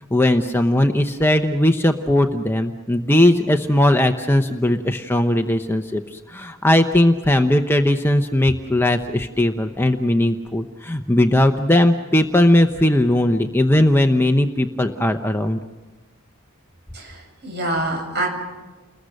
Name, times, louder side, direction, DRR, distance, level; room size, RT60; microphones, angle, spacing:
voice 1, 0.1-15.6, left 1 dB, 10° left, 6 dB, 0.8 m, -18 dB
voice 2, 16.9-18.3, right 1 dB, 50° right, 2 dB, 7.6 m, -26 dB
29.5 x 21.0 x 6.6 m, 1.2 s
head